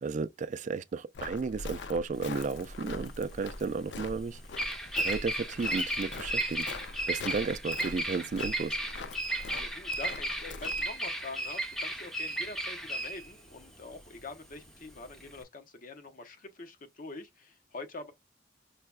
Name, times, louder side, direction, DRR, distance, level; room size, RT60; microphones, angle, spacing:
voice 1, 0.0-4.4 5.0-6.7 7.1-8.8, right 4 dB, 45° right, 0.3 m, -33 dB
Walk footsteps, 1.1-10.9, left 3 dB, 70° left, 0.4 m, -43 dB
Bird vocalization bird call bird song, 2.2-15.4, right 1 dB, ahead, 0.6 m, -35 dB
voice 2, 9.5-18.1, left 3 dB, 50° left, 0.8 m, -45 dB
5.5 x 2.2 x 2.2 m
head